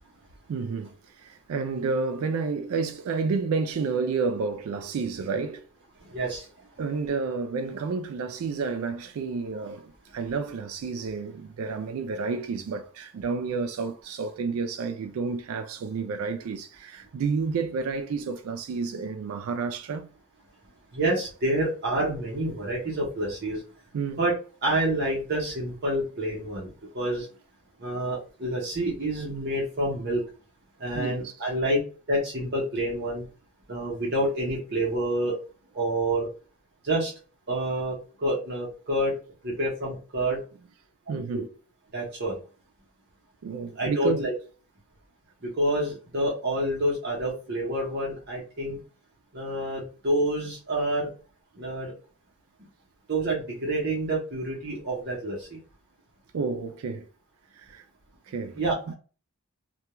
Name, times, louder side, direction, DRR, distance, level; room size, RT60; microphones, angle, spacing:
voice 1, 0.5-5.6 6.8-20.1 23.9-24.2 31.0-31.3 41.1-41.5 43.4-44.3 56.3-57.1 57.6-57.8 58.3-58.6 58.9-59.0, right 4 dB, 70° right, 0.3 m, -30 dB
voice 2, 6.1-6.5 20.9-23.6 24.2-24.3 24.6-26.7 26.9-27.3 27.8-30.2 30.8-31.8 32.1-33.2 33.7-35.4 35.7-36.3 36.8-37.1 37.5-39.1 39.4-40.4 41.1-41.2 41.9-42.4 43.8-44.3 45.4-48.8 49.3-51.1 51.6-51.9 53.1-55.6 58.6-58.9, right 1 dB, 50° right, 0.8 m, -28 dB
2.2 x 2.2 x 2.9 m
head